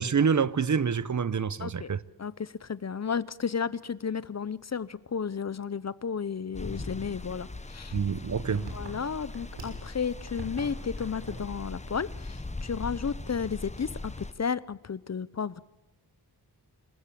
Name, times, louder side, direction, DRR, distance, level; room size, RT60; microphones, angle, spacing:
voice 1, 0.0-2.0 7.9-8.7, right 6 dB, 45° right, 0.8 m, -27 dB
voice 2, 1.6-1.9 2.2-7.9 8.6-15.6, left 6 dB, 40° left, 0.7 m, -33 dB
sound 1, 6.5-14.3, left 2 dB, 15° left, 1.0 m, -40 dB
sound 2, 7.9-9.9 10.2-10.7 10.9-11.4 11.7-11.9 12.3-12.4 13.1-13.5, right 2 dB, 80° right, 6.5 m, -43 dB
26.5 x 14.5 x 7.5 m
wide cardioid pair, 90°, 40 cm